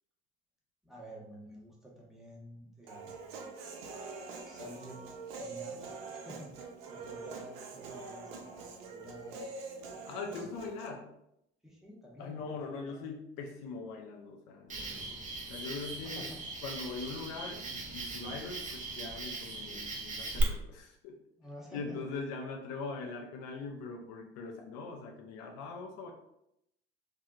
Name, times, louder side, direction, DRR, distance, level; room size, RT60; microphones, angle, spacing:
voice 1, 0.8-3.5 4.4-5.0 5.4-5.8 6.1-6.5 6.9-9.4 10.2-10.6 11.6-13.1 16.0-16.5 20.5-20.6 21.4-22.0, equal, ahead, -4 dB, 0.9 m, -50 dB
Human voice, 2.9-10.9, right 4 dB, 65° right, 0.5 m, -45 dB
voice 2, 10.0-11.1 12.2-15.2 15.5-16.3 16.6-21.2 21.7-26.1, left 4 dB, 60° left, 1 dB, 0.5 m, -41 dB
Cricket, 14.7-20.4, right 3 dB, 25° right, 0.7 m, -40 dB
2.7 x 2.3 x 2.4 m, 0.80 s
hypercardioid pair, 55°, 30 cm